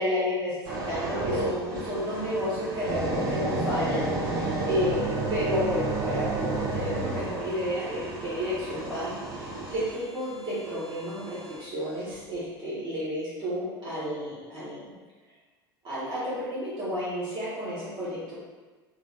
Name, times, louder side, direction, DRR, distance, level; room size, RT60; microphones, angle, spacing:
voice 1, 0.0-14.9 15.8-18.3, equal, 35° right, -10 dB, 1.3 m, -31 dB
sound 1, 0.6-11.6 12.1-12.4, right 2 dB, 55° right, 0.9 m, -32 dB
3.2 x 3.0 x 2.7 m, 1.4 s
figure-of-eight pair, 70°, 13 cm